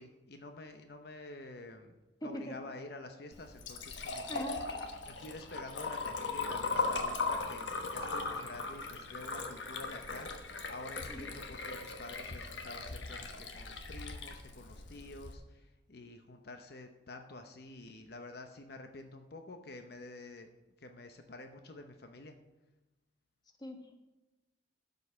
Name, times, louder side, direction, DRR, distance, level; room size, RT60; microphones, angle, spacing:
voice 1, 0.0-4.5 5.1-20.5 20.8-22.3, left 2 dB, 55° left, 6 dB, 0.8 m, -48 dB
voice 2, 2.2-2.5 4.3-4.6 11.1-11.4 23.6-23.9, equal, 20° left, 4 dB, 1.2 m, -41 dB
Liquid, 3.3-15.3, left 3 dB, 75° left, 1.2 m, -39 dB
12.5 x 5.4 x 6.7 m, 1.1 s
head